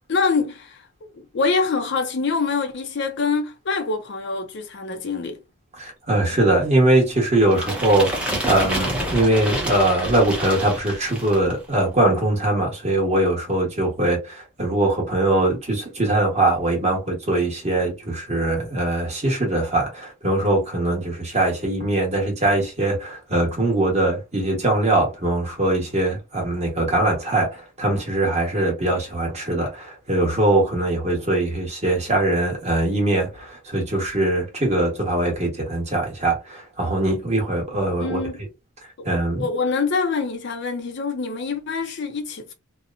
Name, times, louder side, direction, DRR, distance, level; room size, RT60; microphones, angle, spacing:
voice 1, 0.1-5.4 38.0-38.4 39.0-39.1 39.3-42.5, left 4 dB, 50° left, 0.4 m, -25 dB
voice 2, 5.8-38.2 39.0-39.5, right 1 dB, 30° right, 1.1 m, -21 dB
sound 1, 7.5-11.5, right 1 dB, 5° right, 0.6 m, -28 dB
2.8 x 2.1 x 2.4 m
head